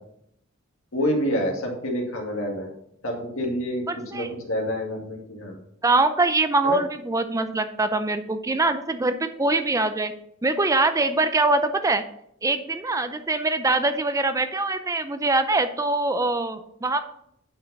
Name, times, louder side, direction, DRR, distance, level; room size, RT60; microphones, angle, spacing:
voice 1, 0.9-2.7 3.0-3.9 4.1-5.6 6.6-6.8, equal, 70° left, 1 dB, 2.1 m, -27 dB
voice 2, 3.9-4.3 5.8-10.1 10.4-12.0 12.4-17.0, right 2 dB, 15° right, 9 dB, 0.5 m, -23 dB
8.9 x 5.6 x 4.1 m, 0.72 s
head